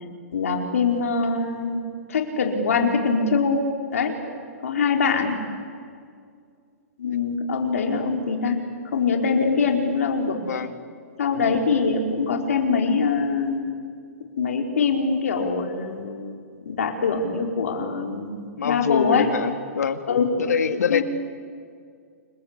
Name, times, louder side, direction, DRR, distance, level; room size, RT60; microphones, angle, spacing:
voice 1, 0.3-1.8 2.1-3.7 3.9-4.2 4.6-5.4 7.0-8.6 8.9-10.4 11.2-13.6 14.4-16.3 16.6-19.3 20.1-20.3 20.9-21.0, left 5 dB, 65° left, 1 dB, 4.7 m, -23 dB
voice 2, 18.6-20.0 20.4-21.0, left 7 dB, 85° left, 7 dB, 2.1 m, -24 dB
29.0 x 23.0 x 8.4 m, 2.2 s
hypercardioid pair, 180°, 8 cm